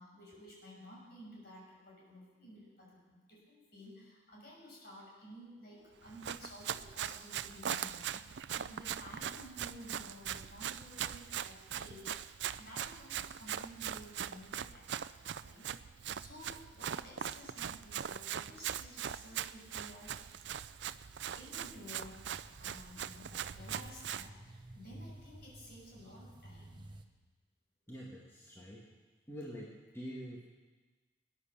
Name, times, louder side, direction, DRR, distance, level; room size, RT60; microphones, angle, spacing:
voice 1, 0.0-14.9 15.4-20.4 21.3-27.0, equal, 55° left, -3 dB, 6.1 m, -53 dB
Run, 6.1-24.3, right 9 dB, 70° right, 0.4 m, -41 dB
sound 1, 20.0-27.0, right 1 dB, 25° right, 1.0 m, -54 dB
voice 2, 27.9-28.8 29.3-30.4, equal, 15° left, -5 dB, 2.1 m, -46 dB
20.5 x 9.9 x 6.8 m, 1.3 s
head